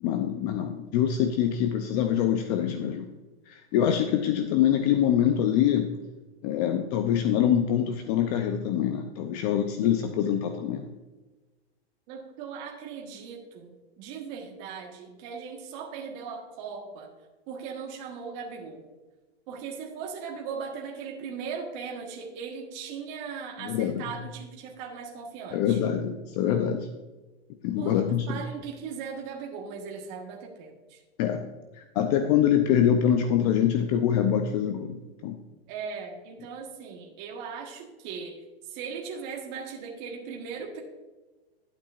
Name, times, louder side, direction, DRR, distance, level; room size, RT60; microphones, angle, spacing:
voice 1, 0.0-3.1 3.5-5.9 6.4-10.9 23.6-24.0 25.5-26.9 27.6-28.4 31.2-35.4, left 9 dB, 40° left, 7 dB, 0.6 m, -25 dB
voice 2, 12.1-17.1 17.5-18.8 19.5-25.8 27.8-31.0 35.7-40.8, right 6 dB, 45° right, 1 dB, 1.4 m, -38 dB
11.5 x 8.7 x 2.5 m, 1.2 s
hypercardioid pair, 130°, 32 cm